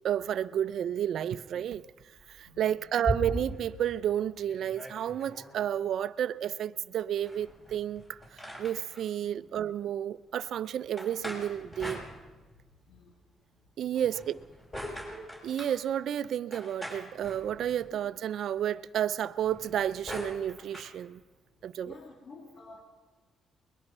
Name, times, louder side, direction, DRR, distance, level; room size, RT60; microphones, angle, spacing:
voice 1, 0.0-1.8 2.3-8.2 8.6-12.0 13.8-14.4 15.4-21.2 21.6-21.9, right 10 dB, 70° right, 0.6 m, -31 dB
sound 1, 2.2-3.7 4.2-4.3 4.4-5.6 7.2-9.0 11.0-12.7 14.0-15.8 16.5-17.9 19.4-20.9, equal, 20° left, 6.3 m, -40 dB
voice 2, 21.8-22.8, left 3 dB, 55° left, 3.2 m, -51 dB
22.5 x 21.0 x 5.5 m
cardioid pair, 90°, 0 cm